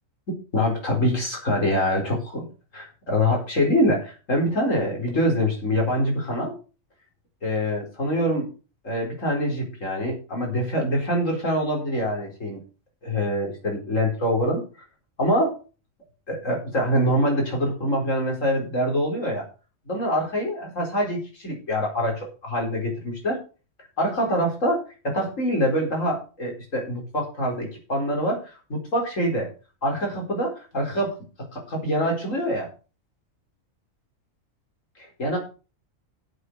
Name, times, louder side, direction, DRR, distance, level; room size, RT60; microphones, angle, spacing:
voice 1, 0.5-6.5 7.4-8.5 8.8-12.6 13.0-14.6 15.2-15.5 16.3-19.5 19.9-23.4 24.0-28.4 28.7-29.5 29.8-31.2 31.5-32.7 35.2-35.4, equal, 70° left, 0 dB, 4.6 m, -25 dB
8.1 x 8.0 x 6.6 m, 0.34 s
omnidirectional pair, 1.4 m